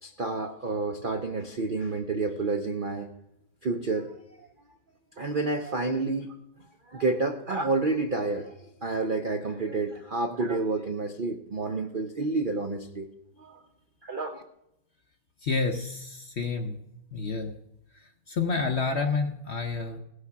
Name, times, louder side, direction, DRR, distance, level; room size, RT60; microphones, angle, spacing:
voice 1, 0.0-3.1 3.6-4.1 5.2-6.4 6.9-8.6 8.8-13.1 13.4-13.6 14.0-14.4, right 3 dB, 60° right, 5 dB, 0.5 m, -29 dB
voice 2, 15.4-16.8 17.1-17.6 18.3-20.0, left 4 dB, 55° left, 6 dB, 0.8 m, -29 dB
17.0 x 6.6 x 5.8 m, 0.86 s
omnidirectional pair, 1.9 m